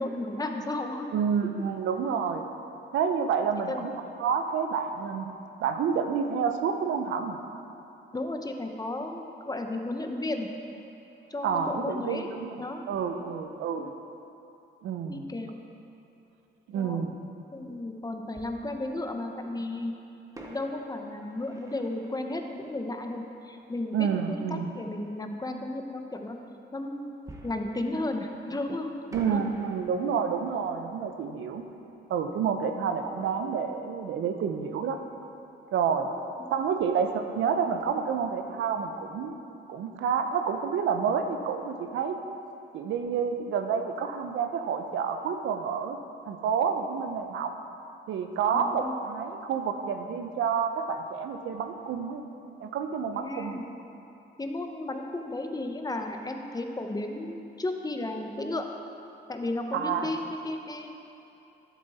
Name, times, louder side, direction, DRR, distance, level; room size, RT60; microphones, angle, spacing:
voice 1, 0.0-1.1 3.7-3.9 8.1-10.5 11.3-12.3 12.6-12.9 13.2-13.3 15.1-15.6 16.7-17.0 17.5-19.9 20.5-26.4 26.7-27.1 27.4-28.9 29.2-29.4 36.1-36.5 48.5-49.0 53.1-53.6 54.4-58.6 59.3-60.9, left 2 dB, 20° left, 4 dB, 0.9 m, -34 dB
voice 2, 1.1-2.4 2.9-3.9 4.2-5.3 5.6-7.4 11.4-12.5 12.9-13.9 14.8-15.2 16.7-17.1 23.9-24.7 29.1-31.6 32.1-35.0 35.7-36.1 36.5-39.4 39.7-42.2 42.7-46.0 46.3-47.5 48.1-52.3 52.6-53.6 59.7-60.1, right 6 dB, 75° right, 6 dB, 0.8 m, -29 dB
Fireworks, 17.0-17.1 18.3-19.5 20.3-23.8 27.3-28.7 29.1-33.7 33.9-34.0 34.5-34.7, right 1 dB, 15° right, 1.2 m, -49 dB
11.5 x 7.4 x 4.2 m, 2.8 s
cardioid pair, 90°, 20 cm